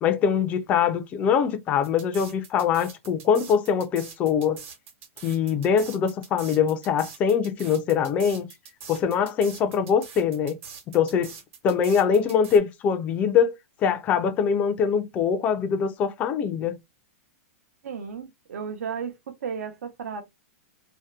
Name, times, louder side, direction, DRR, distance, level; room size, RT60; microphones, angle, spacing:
voice 1, 0.0-4.6 5.2-8.5 8.9-10.6 10.9-11.3 11.6-13.5 13.8-16.8, left 7 dB, 20° left, 0.3 m, -23 dB
sound 1, 1.8-12.6, right 6 dB, 60° right, 1.0 m, -44 dB
voice 2, 17.8-20.2, right 6 dB, 85° right, 0.7 m, -34 dB
2.7 x 2.0 x 2.2 m
supercardioid pair, 165°, 8 cm